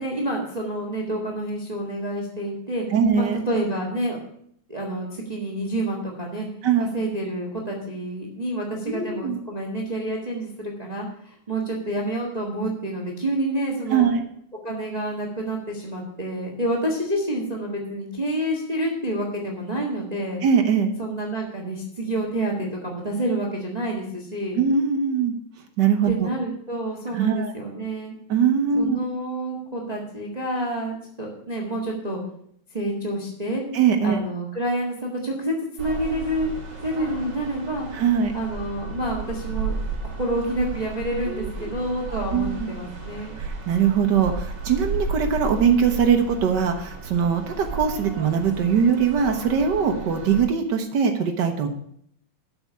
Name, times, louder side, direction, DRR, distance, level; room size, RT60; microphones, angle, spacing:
voice 1, 0.0-2.9 3.1-4.2 4.7-6.5 6.8-14.0 14.6-20.4 21.0-24.6 26.1-28.1 28.8-32.2 32.7-33.6 34.0-36.5 36.8-37.9 38.3-39.7 40.0-43.3, right 1 dB, 15° right, 0 dB, 1.4 m, -28 dB
voice 2, 2.9-3.4 6.6-6.9 8.9-9.4 13.9-14.2 20.4-20.9 24.5-25.3 25.8-26.3 27.1-27.5 28.3-29.0 33.7-34.2 37.9-38.3 41.3-41.7 42.3-42.7 43.4-51.7, right 7 dB, 75° right, 4 dB, 1.0 m, -21 dB
sound 1, 35.8-50.4, right 3 dB, 40° right, 2.3 m, -34 dB
8.2 x 7.0 x 8.3 m, 0.68 s
omnidirectional pair, 3.4 m